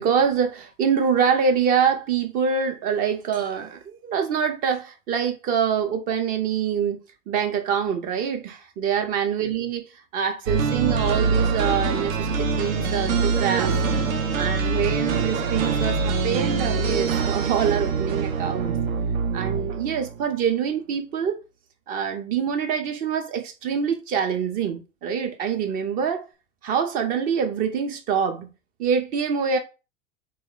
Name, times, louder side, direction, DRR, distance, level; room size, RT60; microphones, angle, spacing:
voice 1, 0.0-13.7 14.3-18.7 19.3-21.4 21.9-26.3 26.6-28.5 28.8-29.6, right 7 dB, 25° right, 0.4 m, -25 dB
sound 1, 10.5-20.3, right 5 dB, 75° right, 0.7 m, -24 dB
3.1 x 2.2 x 3.7 m
figure-of-eight pair, 90°, 41 cm